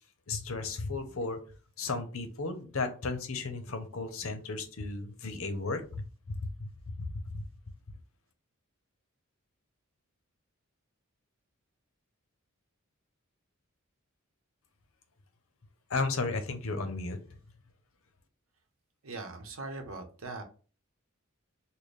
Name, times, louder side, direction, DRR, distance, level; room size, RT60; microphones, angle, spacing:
voice 1, 0.3-1.4 1.8-7.5 15.9-17.2, left 3 dB, 70° left, 8 dB, 0.7 m, -34 dB
voice 2, 19.0-20.4, right 3 dB, 70° right, 4 dB, 0.8 m, -40 dB
3.3 x 2.2 x 4.0 m, 0.37 s
head